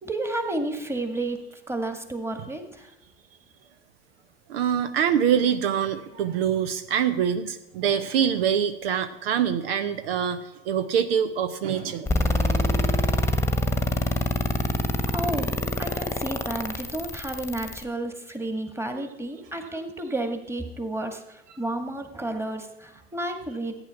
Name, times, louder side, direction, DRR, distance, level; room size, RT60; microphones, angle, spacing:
voice 1, 0.0-2.9 14.9-23.8, right 2 dB, 10° right, 6 dB, 1.8 m, -31 dB
voice 2, 4.5-12.1, right 8 dB, 65° right, 10 dB, 0.8 m, -25 dB
sound 1, 12.1-17.8, left 2 dB, 10° left, 1.3 m, -25 dB
14.5 x 9.0 x 5.7 m, 1.0 s
figure-of-eight pair, 75°, 32 cm